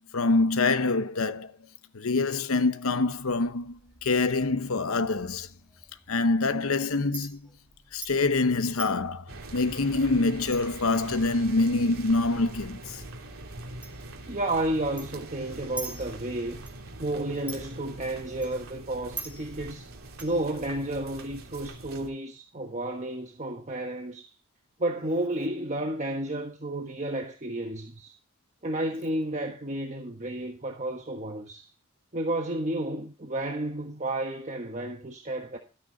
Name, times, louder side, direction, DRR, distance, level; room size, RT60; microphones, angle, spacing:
voice 1, 0.1-1.5 1.9-5.5 6.1-7.5 7.9-13.0, left 3 dB, 75° left, 0.9 m, -25 dB
Chink clink, 2.9-21.1, right 3 dB, 5° right, 3.5 m, -48 dB
sound 1, 9.3-22.1, right 2 dB, 75° right, 3.0 m, -43 dB
voice 2, 14.3-16.6 17.0-19.9 20.2-24.3 24.8-28.1 28.6-31.7 32.1-35.6, right 1 dB, 35° right, 1.3 m, -32 dB
13.0 x 8.9 x 3.9 m
head